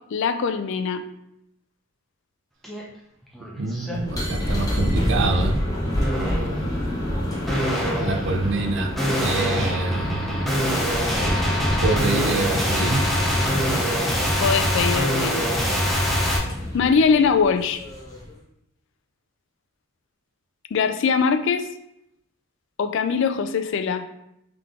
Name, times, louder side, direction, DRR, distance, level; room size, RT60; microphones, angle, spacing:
voice 1, 0.1-1.0 14.4-15.4 16.7-17.8 20.7-21.7 22.8-24.0, left 5 dB, 60° left, 9 dB, 0.3 m, -22 dB
sound 1, 2.6-2.8 3.2-4.0 4.5-4.9 6.0-6.6 7.5-16.4, equal, ahead, 0.6 m, -24 dB
voice 2, 3.6-5.6 8.0-8.9 9.2-10.6 11.8-13.0, right 3 dB, 60° right, 5 dB, 0.5 m, -26 dB
sound 2, 3.9-18.3, equal, 15° left, 0.9 m, -28 dB
3.7 x 3.4 x 3.5 m, 0.80 s
head